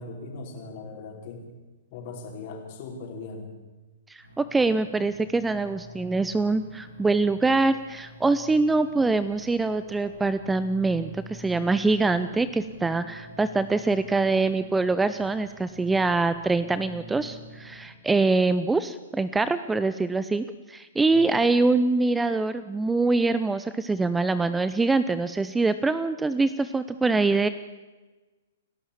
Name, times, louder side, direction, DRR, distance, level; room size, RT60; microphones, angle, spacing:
voice 1, 0.0-1.5 1.9-3.5 21.1-21.4, left 3 dB, 45° left, 2 dB, 5.1 m, -39 dB
voice 2, 4.1-27.5, right 3 dB, 10° right, 13 dB, 0.7 m, -24 dB
sound 1, 4.2-17.8, equal, 80° right, 5.5 m, -46 dB
30.0 x 12.0 x 7.4 m, 1.2 s
figure-of-eight pair, 115°, 0 cm